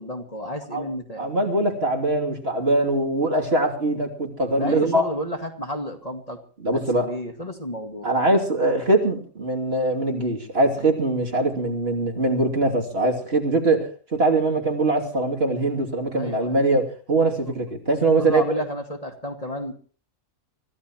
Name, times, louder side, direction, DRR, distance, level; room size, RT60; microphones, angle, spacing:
voice 1, 0.0-1.3 4.5-6.4 6.7-8.1 16.1-16.6 18.2-19.7, left 1 dB, 30° left, 3 dB, 2.1 m, -32 dB
voice 2, 1.2-5.0 6.6-7.1 8.0-18.5, right 2 dB, 50° right, 1 dB, 3.1 m, -22 dB
24.5 x 15.5 x 3.1 m, 0.41 s
omnidirectional pair, 1.3 m